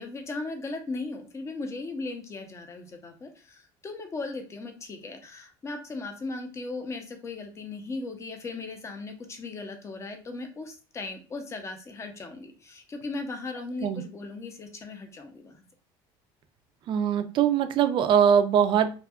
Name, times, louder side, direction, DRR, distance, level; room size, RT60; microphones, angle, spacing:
voice 1, 0.0-15.6, left 3 dB, 25° left, 5 dB, 0.6 m, -37 dB
voice 2, 16.9-19.0, right 8 dB, 50° right, 9 dB, 0.3 m, -22 dB
2.6 x 2.3 x 2.3 m, 0.36 s
supercardioid pair, 110°, 11 cm